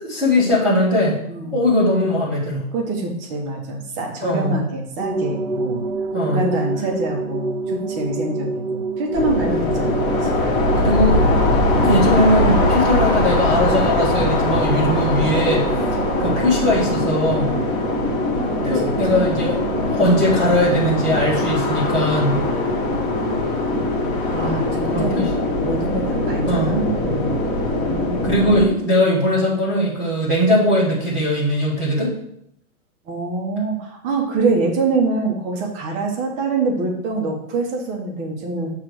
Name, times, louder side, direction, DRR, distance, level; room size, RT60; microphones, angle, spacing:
voice 1, 0.0-1.1 1.5-2.6 4.2-4.6 6.1-6.5 10.8-11.2 11.8-15.6 16.2-17.5 18.6-19.6 19.9-22.4 24.9-25.3 26.4-26.7 28.2-32.1, left 1 dB, ahead, -15 dB, 0.5 m, -19 dB
voice 2, 1.3-1.6 2.7-5.8 6.1-10.3 18.6-19.3 24.3-25.3 25.6-27.4 27.7-28.5 33.1-38.7, right 3 dB, 15° right, 1 dB, 0.9 m, -25 dB
sound 1, 5.0-24.7, right 3 dB, 50° right, 1.0 m, -31 dB
sound 2, 9.1-28.7, left 2 dB, 15° left, 1.3 m, -21 dB
7.5 x 3.3 x 6.2 m, 0.75 s
hypercardioid pair, 160°, 43 cm